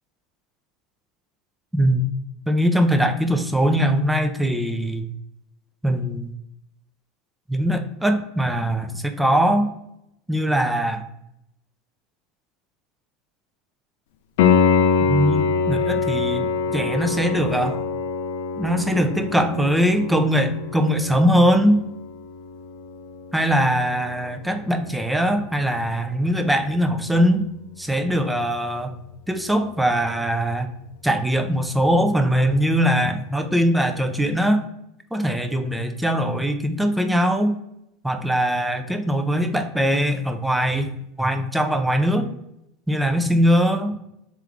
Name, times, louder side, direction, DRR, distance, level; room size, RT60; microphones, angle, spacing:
voice 1, 1.7-2.1 2.5-5.1 5.8-6.3 7.5-9.7 10.3-11.0 15.1-17.8 18.6-21.8 23.3-27.5 27.8-28.9 29.3-30.7 31.0-34.6 35.1-37.6 38.0-40.9 41.2-42.3 42.9-44.0, equal, 5° right, 6 dB, 0.5 m, -21 dB
Piano, 14.4-25.0 28.3-28.4, left 5 dB, 70° left, 0.4 m, -25 dB
3.5 x 3.3 x 3.6 m, 0.81 s
hypercardioid pair, 80°, 0 cm